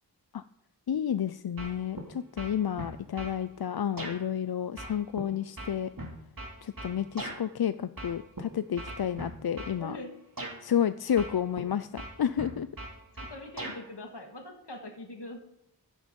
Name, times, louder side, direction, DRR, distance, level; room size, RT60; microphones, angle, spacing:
voice 1, 0.9-5.9 6.6-10.0 10.6-12.7, left 9 dB, 65° left, 13 dB, 0.5 m, -30 dB
sound 1, 1.6-2.1 2.4-3.4 4.0-4.2 4.8-7.4 8.0-8.4 8.8-9.8 10.4-10.6 11.2-11.7 12.0-13.8, right 1 dB, 55° right, 2.6 m, -39 dB
voice 2, 9.8-10.1 13.2-15.4, left 1 dB, 85° left, 4 dB, 2.0 m, -43 dB
13.0 x 10.5 x 5.3 m, 0.81 s
wide cardioid pair, 45°, 40 cm